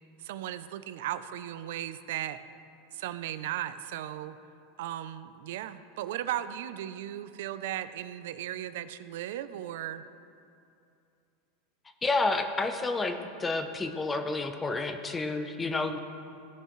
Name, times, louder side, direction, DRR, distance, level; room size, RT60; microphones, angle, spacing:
voice 1, 0.2-2.4 2.9-4.4 4.8-10.0, right 12 dB, 75° right, 13 dB, 0.4 m, -36 dB
voice 2, 12.0-16.0, left 3 dB, 15° left, 7 dB, 0.7 m, -30 dB
16.5 x 5.6 x 3.1 m, 2.6 s
supercardioid pair, 125°, 0 cm